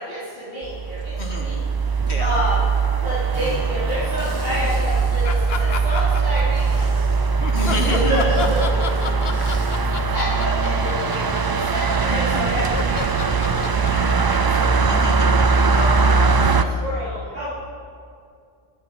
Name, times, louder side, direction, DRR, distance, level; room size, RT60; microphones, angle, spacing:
voice 1, 0.0-2.6 3.0-6.9 7.8-8.9 10.1-11.4 11.7-14.9 15.7-17.5, equal, 60° right, -14 dB, 4.9 m, -29 dB
sound 1, 0.6-16.6, right 4 dB, 35° right, 0.3 m, -20 dB
voice 2, 1.2-1.6 2.1-2.4 7.5-8.5 8.7-9.1 14.8-15.5, left 2 dB, 85° left, 1 dB, 2.2 m, -29 dB
sound 2, 3.3-3.6 3.9-6.0 6.5-9.9, right 1 dB, 20° right, 3.2 m, -38 dB
sound 3, 5.2-6.9 7.4-15.7, left 5 dB, 70° left, 1.1 m, -31 dB
16.5 x 14.0 x 4.2 m, 2.3 s
omnidirectional pair, 1.1 m